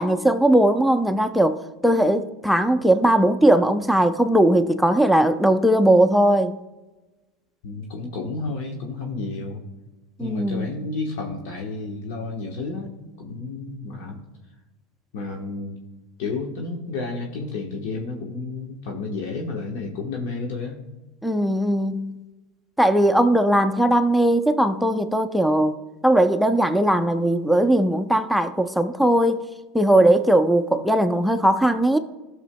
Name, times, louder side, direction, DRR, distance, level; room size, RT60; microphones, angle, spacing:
voice 1, 0.0-1.6 1.8-6.6 10.2-10.7 21.2-22.2 22.8-25.8 26.0-29.4 29.7-32.0, right 1 dB, ahead, 0.5 m, -19 dB
voice 2, 7.6-9.6 10.2-12.9 13.2-14.2 15.1-15.8 16.2-20.8, left 3 dB, 65° left, 1.1 m, -31 dB
15.0 x 6.3 x 2.2 m
hypercardioid pair, 90°, 0 cm